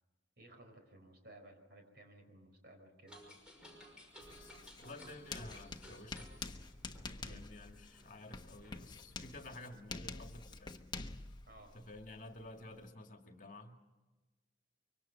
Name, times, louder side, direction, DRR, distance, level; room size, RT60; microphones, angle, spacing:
voice 1, 0.4-3.2 7.2-7.5 11.5-11.8, right 1 dB, 55° right, 4 dB, 5.0 m, -58 dB
sound 1, 3.1-9.2, equal, 5° right, 5.9 m, -58 dB
Writing, 4.2-12.9, left 3 dB, 25° left, 1.1 m, -48 dB
voice 2, 4.8-6.3 7.2-10.8 11.7-13.8, left 2 dB, 45° left, 4 dB, 2.2 m, -52 dB
24.5 x 24.5 x 5.8 m, 1.1 s
head